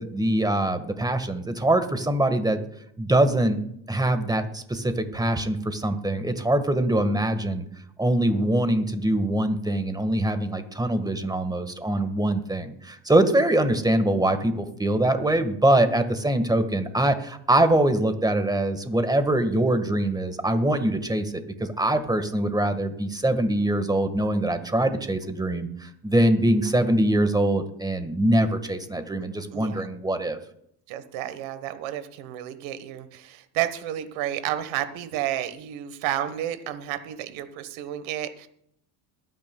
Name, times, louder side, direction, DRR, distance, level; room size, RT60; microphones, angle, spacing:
voice 1, 0.0-2.6 3.0-3.6 3.9-7.6 8.0-30.4, right 1 dB, 10° right, 9 dB, 1.5 m, -23 dB
voice 2, 29.5-29.9 30.9-38.5, right 12 dB, 70° right, 12 dB, 1.4 m, -31 dB
22.5 x 9.4 x 2.3 m, 0.70 s
supercardioid pair, 80°, 47 cm